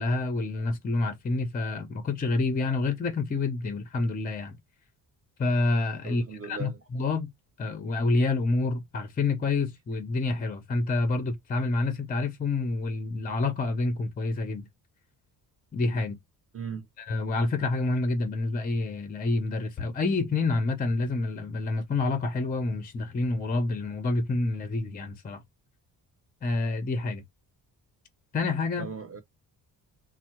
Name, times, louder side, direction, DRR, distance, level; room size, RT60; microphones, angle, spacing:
voice 1, 0.0-4.6 5.4-7.3 7.6-14.7 15.7-16.2 17.0-25.4 26.4-27.2 28.3-28.9, left 3 dB, 25° left, 0.5 m, -28 dB
voice 2, 6.0-6.8 16.5-16.9 28.8-29.2, right 5 dB, 35° right, 0.7 m, -38 dB
3.4 x 2.0 x 2.8 m
cardioid pair, 145°, 40 cm